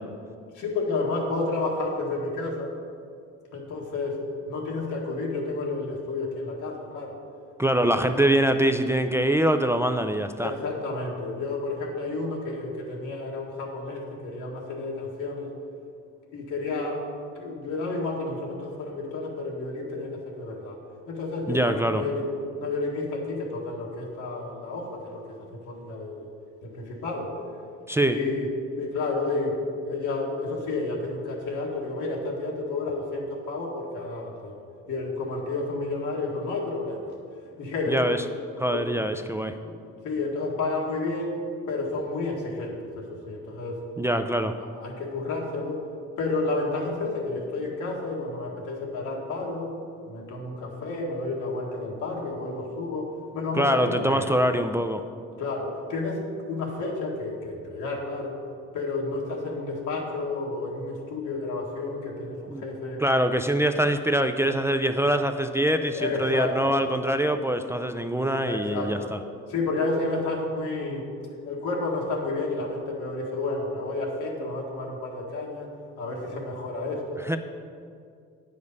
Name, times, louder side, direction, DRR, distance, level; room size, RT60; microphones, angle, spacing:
voice 1, 0.5-2.7 3.5-4.2 4.5-7.2 7.7-8.0 10.4-15.5 16.3-20.8 21.1-26.3 26.6-27.4 28.0-28.5 28.8-34.6 34.9-37.1 37.6-38.1 38.7-38.9 39.6-39.8 40.0-41.4 41.7-43.8 44.6-45.8 46.2-49.7 50.0-54.3 55.4-58.4 58.7-63.0 65.9-66.6 68.4-69.1 69.5-71.1 71.4-75.7 76.0-77.3, left 3 dB, 85° left, -2 dB, 1.7 m, -31 dB
voice 2, 7.6-10.5 21.5-22.0 27.9-28.2 37.9-38.2 38.6-39.6 44.0-44.6 53.5-55.1 62.5-62.6 63.0-69.2 77.2-77.4, right 1 dB, 10° right, 7 dB, 0.3 m, -24 dB
9.4 x 5.1 x 5.4 m, 2.3 s
cardioid pair, 90°, 30 cm